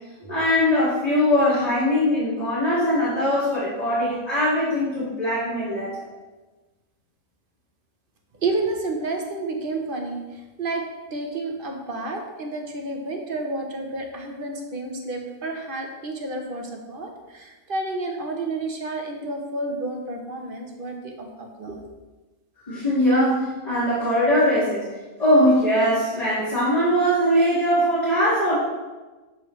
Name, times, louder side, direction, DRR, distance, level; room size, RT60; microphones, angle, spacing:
voice 1, 0.2-5.9 22.7-24.8 25.2-28.5, equal, 30° left, -11 dB, 2.0 m, -21 dB
voice 2, 8.4-10.2 10.6-10.8 11.1-17.1 17.3-21.8, right 2 dB, 50° right, 2 dB, 1.0 m, -30 dB
7.3 x 6.3 x 3.1 m, 1.2 s
omnidirectional pair, 1.3 m